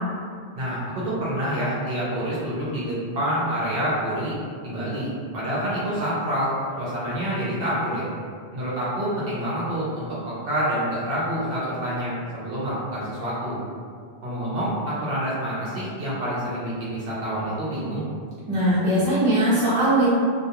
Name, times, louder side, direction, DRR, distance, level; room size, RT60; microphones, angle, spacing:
voice 1, 0.6-4.3 4.6-8.1 8.5-13.6 14.2-18.0, equal, 65° right, -9 dB, 0.8 m, -27 dB
voice 2, 18.5-20.1, right 1 dB, 20° right, -12 dB, 0.9 m, -20 dB
2.3 x 2.2 x 2.8 m, 2.1 s
omnidirectional pair, 1.1 m